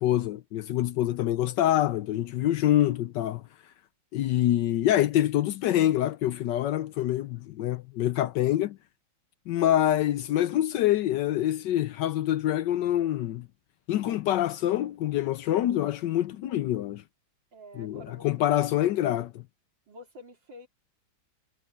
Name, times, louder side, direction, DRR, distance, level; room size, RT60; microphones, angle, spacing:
voice 1, 0.0-3.4 4.1-8.8 9.5-13.5 13.9-17.0 17.8-19.3, left 12 dB, 75° left, 1.2 m, -26 dB
voice 2, 17.5-18.7 19.9-20.7, left 1 dB, 65° right, 4.1 m, -48 dB
omnidirectional pair, 2.1 m